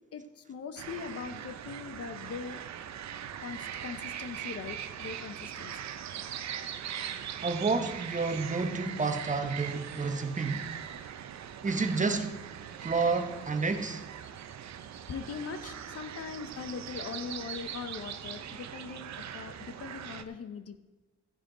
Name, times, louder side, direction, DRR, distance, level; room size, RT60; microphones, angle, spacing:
voice 1, 0.1-2.6 3.4-5.7 15.1-20.8, left 5 dB, 50° left, 9 dB, 1.0 m, -41 dB
sound 1, 0.8-20.2, right 9 dB, 65° right, 0.9 m, -41 dB
voice 2, 7.4-10.7 11.6-12.4 12.8-14.0, right 4 dB, 25° right, 7 dB, 1.1 m, -30 dB
14.5 x 9.7 x 4.0 m, 1.1 s
cardioid pair, 90°, 30 cm